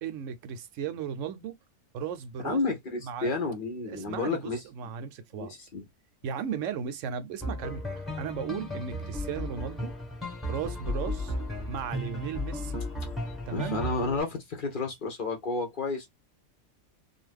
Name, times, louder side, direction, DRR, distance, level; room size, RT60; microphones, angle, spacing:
voice 1, 0.0-1.6 1.9-2.6 3.0-3.3 3.8-5.5 6.2-9.9 10.5-11.3 11.7-12.8 13.5-13.8, right 7 dB, 70° right, 0.9 m, -36 dB
voice 2, 2.4-4.9 5.3-5.8 13.5-16.1, left 3 dB, 45° left, 0.7 m, -31 dB
sound 1, 7.4-14.2, left 1 dB, ahead, 0.9 m, -35 dB
2.5 x 2.4 x 3.3 m
omnidirectional pair, 1.4 m